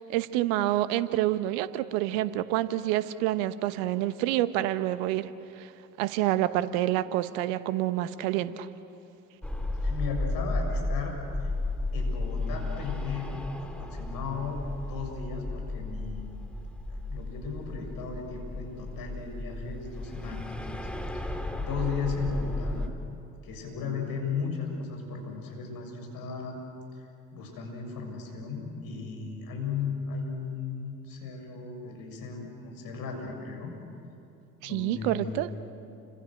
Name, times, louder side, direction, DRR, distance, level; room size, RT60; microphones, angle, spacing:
voice 1, 0.0-5.3 5.6-5.7 6.0-8.7 34.6-35.5, right 14 dB, 70° right, 13 dB, 1.2 m, -28 dB
sound 1, 9.4-22.9, left 2 dB, 5° left, 2.9 m, -34 dB
voice 2, 9.7-11.5 11.9-14.6 14.9-16.4 16.9-20.9 21.1-21.2 21.6-22.8 23.4-26.6 26.9-27.0 27.3-33.7 34.6-35.4, left 5 dB, 55° left, 2 dB, 7.5 m, -36 dB
29.5 x 26.0 x 6.6 m, 2.8 s
hypercardioid pair, 65°, 41 cm